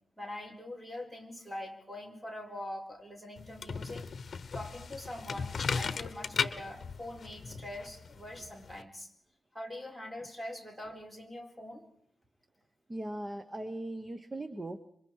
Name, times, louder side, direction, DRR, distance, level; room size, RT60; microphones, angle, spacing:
voice 1, 0.2-4.1 4.5-9.1 9.5-11.8, left 1 dB, 5° right, 2 dB, 4.4 m, -43 dB
sound 1, 3.4-8.8, left 5 dB, 50° left, 1.1 m, -37 dB
voice 2, 12.9-14.8, right 1 dB, 25° right, 9 dB, 1.1 m, -39 dB
27.5 x 24.5 x 4.7 m, 0.68 s
wide cardioid pair, 125°, 0 cm